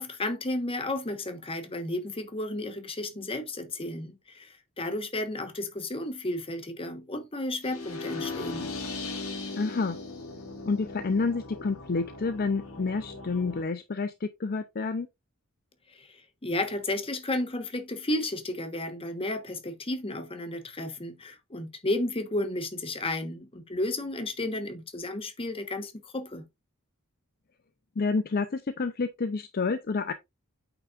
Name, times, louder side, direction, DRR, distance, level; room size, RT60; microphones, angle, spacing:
voice 1, 0.0-4.5 4.8-8.7 16.0-26.5, left 1 dB, 25° left, 1.2 m, -33 dB
sound 1, 7.6-13.6, left 3 dB, 90° left, 2.4 m, -38 dB
voice 2, 9.6-10.0 10.6-15.1 28.0-30.1, left 4 dB, 45° left, 0.5 m, -29 dB
8.6 x 5.9 x 2.4 m
head